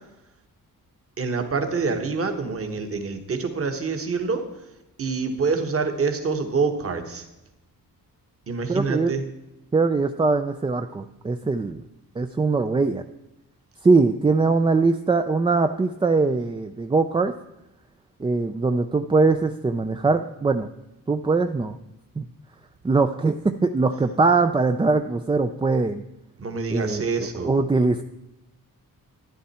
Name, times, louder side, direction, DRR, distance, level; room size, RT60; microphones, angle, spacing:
voice 1, 1.2-4.4 5.0-7.2 8.5-9.2 26.4-27.5, right 4 dB, 40° right, 6 dB, 1.4 m, -26 dB
voice 2, 8.7-9.1 9.7-11.8 12.2-13.0 13.8-17.3 18.2-20.7 21.1-21.8 22.2-22.3 22.8-26.0 26.7-28.0, right 3 dB, 15° right, 7 dB, 0.3 m, -22 dB
12.5 x 10.5 x 4.3 m, 0.93 s
wide cardioid pair, 155°, 35 cm